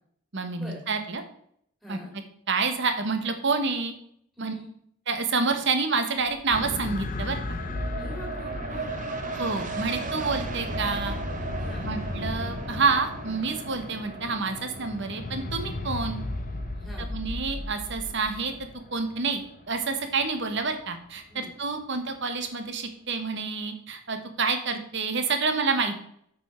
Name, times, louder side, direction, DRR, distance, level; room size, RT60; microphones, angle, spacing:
voice 1, 0.3-1.2 1.9-2.0 2.5-3.9 4.4-4.5 5.1-7.6 9.3-11.2 11.8-16.2 17.1-18.5 18.9-26.0, right 4 dB, 55° right, 7 dB, 1.2 m, -28 dB
voice 2, 1.8-2.1 4.4-4.7 8.0-9.0 11.6-11.9 16.7-17.1 21.3-21.5 25.8-26.0, equal, ahead, -2 dB, 2.5 m, -43 dB
sound 1, 6.2-19.5 19.9-20.0, right 3 dB, 35° right, 0.7 m, -38 dB
sound 2, 6.5-20.8 21.6-21.7, left 2 dB, 40° left, 0.6 m, -35 dB
8.2 x 5.8 x 4.4 m, 0.67 s
head